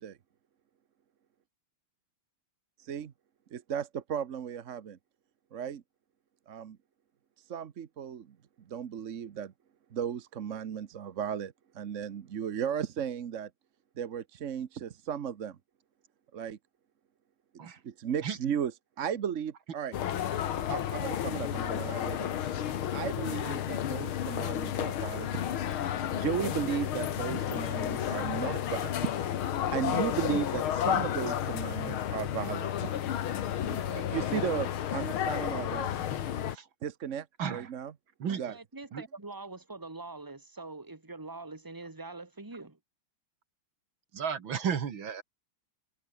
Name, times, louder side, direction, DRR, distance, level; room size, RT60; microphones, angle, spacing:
voice 1, 2.8-3.1 3.5-5.0 5.5-5.8 6.5-6.8 7.5-8.4 8.7-9.5 9.9-13.5 14.0-15.6 16.3-16.6 17.8-18.7 19.0-20.0 20.7-22.3 22.9-25.6 26.1-29.3 29.7-33.0 33.6-35.9 36.8-37.9 38.4-38.6, right 8 dB, 50° right, 1.0 m, -35 dB
sound 1, 19.9-36.6, left 10 dB, 80° left, 2.1 m, -32 dB
voice 2, 37.4-37.7 38.2-38.4 38.9-39.0 44.1-45.2, right 7 dB, 70° right, 2.5 m, -33 dB
voice 3, 38.4-42.8, right 3 dB, 10° right, 2.3 m, -44 dB
omnidirectional pair, 2.3 m